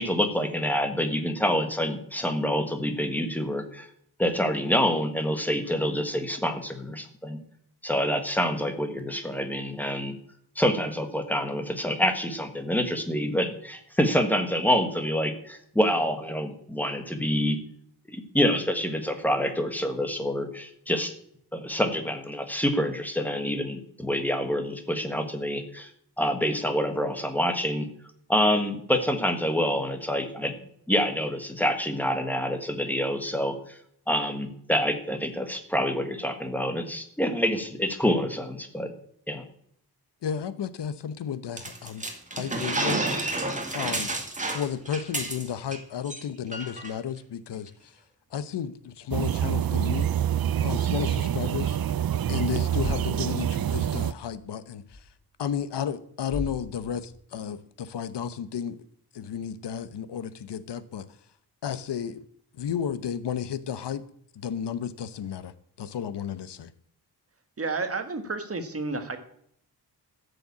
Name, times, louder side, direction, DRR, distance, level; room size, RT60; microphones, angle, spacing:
voice 1, 0.0-3.9 4.2-7.4 7.8-10.1 10.5-17.6 18.1-21.1 21.5-25.9 26.2-27.9 28.3-30.5 30.9-33.5 34.1-38.9 39.3-39.4, equal, 5° left, 6 dB, 1.5 m, -27 dB
voice 2, 40.2-42.1 42.3-43.0 43.7-44.1 44.5-48.0 48.3-50.1 50.6-51.8 52.3-55.1 55.4-58.8 59.1-61.1 61.6-62.2 62.5-64.0 64.3-66.7, left 8 dB, 80° left, 14 dB, 1.0 m, -33 dB
sound 1, 41.6-45.8 46.1-46.2 46.5-46.9, right 2 dB, 20° right, 2.1 m, -30 dB
sound 2, 49.1-54.1, right 10 dB, 60° right, 0.6 m, -26 dB
sound 3, 52.8-53.3 54.4-54.5 54.9-55.0 56.3-57.2, left 2 dB, 30° left, 3.8 m, -35 dB
voice 3, 67.6-69.2, right 3 dB, 35° right, 8 dB, 1.5 m, -31 dB
14.5 x 6.9 x 8.5 m, 0.67 s
wide cardioid pair, 175°, 41 cm